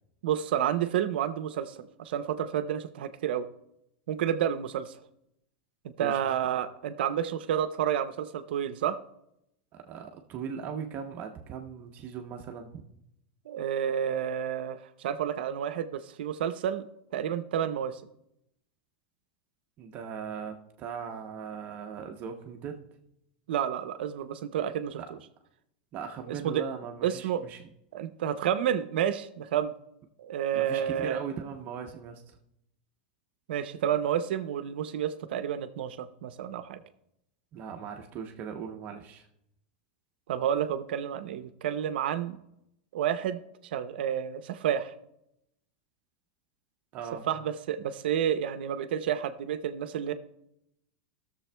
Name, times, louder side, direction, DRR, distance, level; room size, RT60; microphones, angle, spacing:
voice 1, 0.2-3.5 4.1-5.0 6.0-9.0 13.5-16.9 17.1-18.0 23.5-25.0 26.3-26.6 27.0-27.4 27.9-29.7 30.2-31.2 33.5-36.8 40.3-42.4 42.9-43.4 43.7-44.9 47.3-50.1, right 9 dB, 85° right, 10 dB, 0.6 m, -30 dB
voice 2, 9.9-12.8 19.8-22.8 25.0-25.1 25.9-27.6 30.5-32.4 37.5-39.3 46.9-47.3, right 7 dB, 35° right, 3 dB, 0.7 m, -39 dB
20.0 x 6.9 x 2.2 m, 0.80 s
supercardioid pair, 155°, 5 cm